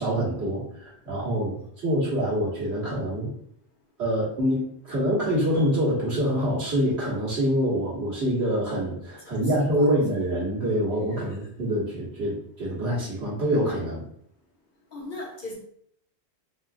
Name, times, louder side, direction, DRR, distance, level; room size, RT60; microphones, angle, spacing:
voice 1, 0.0-1.6 1.8-3.3 4.0-14.0, equal, 75° right, -7 dB, 1.6 m, -25 dB
voice 2, 9.2-10.0 11.1-11.4 14.9-15.5, left 2 dB, 50° left, -3 dB, 1.2 m, -39 dB
4.9 x 2.4 x 2.5 m, 0.67 s
omnidirectional pair, 1.1 m